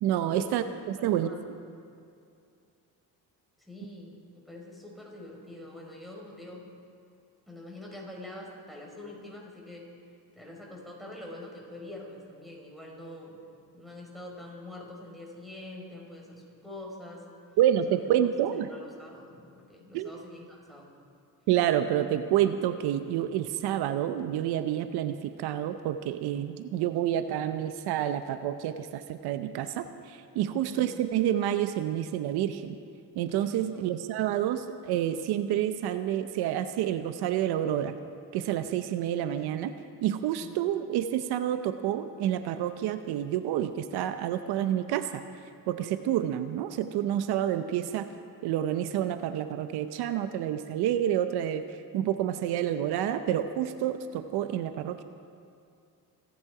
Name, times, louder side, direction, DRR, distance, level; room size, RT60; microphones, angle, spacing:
voice 1, 0.0-1.3 17.6-18.7 19.9-20.1 21.5-32.7 33.1-38.0 38.3-39.7 40.0-45.2 45.7-48.1 48.4-51.6 51.9-55.0, right 11 dB, 85° right, 10 dB, 0.8 m, -28 dB
voice 2, 1.0-1.4 3.6-6.7 7.5-9.9 10.3-13.4 13.7-17.2 17.8-18.0 18.7-20.9 30.5-30.9 33.6-34.0 40.4-40.6, left 1 dB, ahead, -2 dB, 4.9 m, -45 dB
27.0 x 9.5 x 4.8 m, 2.4 s
cardioid pair, 90°, 38 cm